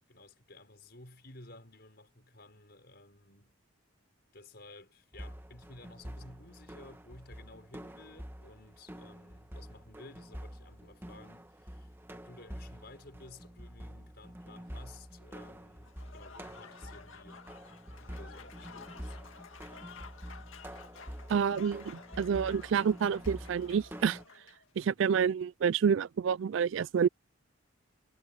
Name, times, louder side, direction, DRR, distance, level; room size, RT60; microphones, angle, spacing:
voice 1, 0.1-3.6 4.3-17.5 18.0-19.2 24.8-24.9, left 2 dB, 50° left, 6.1 m, -54 dB
sound 1, 5.1-24.2, equal, 10° right, 1.3 m, -47 dB
Applause / Crowd, 15.8-24.7, left 5 dB, 70° left, 2.1 m, -52 dB
voice 2, 21.3-24.2 24.8-27.1, right 7 dB, 65° right, 0.3 m, -28 dB
head